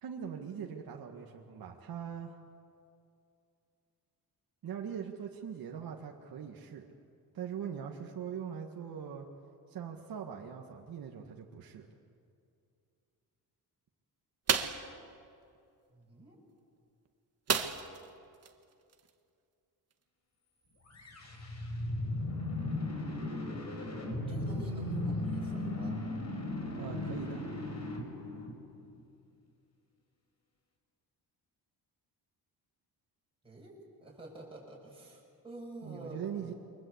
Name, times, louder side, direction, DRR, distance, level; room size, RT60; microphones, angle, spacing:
voice 1, 0.0-2.4 4.6-6.9 7.3-9.3 9.7-11.9 26.8-27.4 35.8-36.5, right 8 dB, 60° right, 1 dB, 1.9 m, -41 dB
sound 1, 14.5-14.9 17.5-18.1 18.4-18.5 18.9-19.1, right 6 dB, 40° right, 1.7 m, -30 dB
voice 2, 15.9-16.4 24.3-26.1 33.4-36.6, right 1 dB, 15° right, -4 dB, 6.8 m, -48 dB
sound 2, 20.9-29.0, left 1 dB, 40° left, 5.2 m, -36 dB
28.5 x 24.0 x 8.1 m, 2.5 s
cardioid pair, 135°, 39 cm